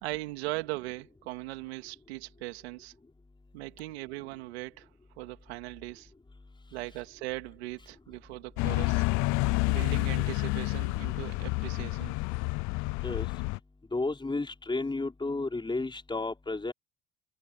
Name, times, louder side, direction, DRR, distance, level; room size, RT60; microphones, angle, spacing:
voice 1, 0.0-2.9 3.5-4.9 5.2-6.1 6.7-9.0 9.7-12.2, right 21 dB, 90° right, 2.6 m, -39 dB
sound 1, 8.6-13.6, left 25 dB, 65° left, 0.6 m, -29 dB
voice 2, 13.9-16.7, left 3 dB, 15° left, 5.2 m, -32 dB
supercardioid pair, 85°, 31 cm